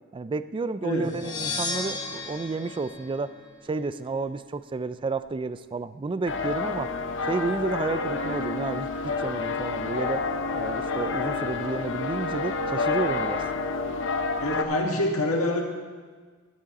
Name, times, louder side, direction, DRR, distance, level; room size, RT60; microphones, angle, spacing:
voice 1, 0.1-3.3 3.6-6.9 7.3-8.9 9.2-10.3 10.5-13.4, right 3 dB, 25° right, 13 dB, 0.3 m, -31 dB
sound 1, 1.0-3.9, left 3 dB, 20° left, 1.0 m, -34 dB
sound 2, 6.3-14.6, left 4 dB, 60° left, 0.7 m, -29 dB
voice 2, 14.4-15.6, left 1 dB, 75° left, 0 dB, 1.8 m, -26 dB
11.5 x 10.0 x 4.1 m, 1.5 s
head